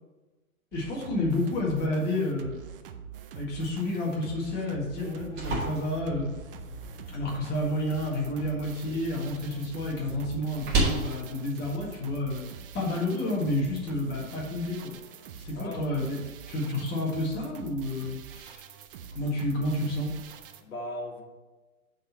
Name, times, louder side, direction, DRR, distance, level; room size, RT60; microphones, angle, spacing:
voice 1, 0.7-2.5 3.3-6.3 7.1-12.4 12.7-14.9 15.4-16.2 16.5-18.6 19.1-20.1, left 1 dB, 20° left, -2 dB, 1.8 m, -30 dB
sound 1, 0.7-20.6, right 8 dB, 40° right, 0.6 m, -45 dB
sound 2, 4.9-12.9, right 2 dB, 20° right, 1.9 m, -35 dB
voice 2, 15.5-16.0 20.6-21.2, left 1 dB, 70° left, -1 dB, 1.8 m, -38 dB
7.3 x 4.4 x 5.7 m, 1.2 s
hypercardioid pair, 135°, 44 cm